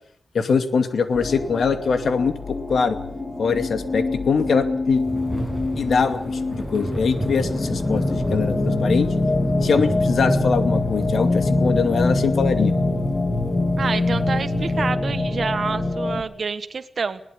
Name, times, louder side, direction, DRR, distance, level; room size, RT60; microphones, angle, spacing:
voice 1, 0.3-3.0 3.4-5.0 5.8-9.1 9.6-12.7, left 5 dB, 75° left, 8 dB, 2.4 m, -22 dB
sound 1, 1.1-16.2, left 2 dB, 20° left, 3.3 m, -24 dB
Thunder / Rain, 5.1-14.9, right 1 dB, ahead, 7.6 m, -35 dB
voice 2, 13.8-17.2, right 5 dB, 55° right, 10 dB, 1.5 m, -27 dB
21.0 x 18.5 x 8.9 m, 0.65 s
wide cardioid pair, 155°, 0 cm